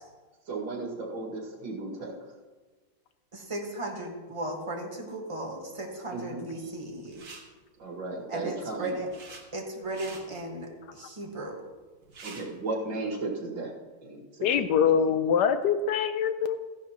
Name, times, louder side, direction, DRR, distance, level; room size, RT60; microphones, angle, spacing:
voice 1, 0.5-2.1 6.1-6.4 7.8-8.9 12.2-13.7 14.0-14.7, right 3 dB, 80° right, -2 dB, 2.6 m, -35 dB
voice 2, 3.3-7.3 8.3-9.1 9.5-11.6, right 1 dB, 20° right, 0 dB, 1.4 m, -36 dB
sound 1, 7.1-7.4 8.6-9.4 9.8-10.2 11.7-11.8 12.0-12.5, right 4 dB, 55° right, 1.9 m, -46 dB
voice 3, 14.4-16.6, left 7 dB, 75° left, 10 dB, 1.1 m, -24 dB
14.5 x 11.0 x 2.9 m, 1.4 s
omnidirectional pair, 2.0 m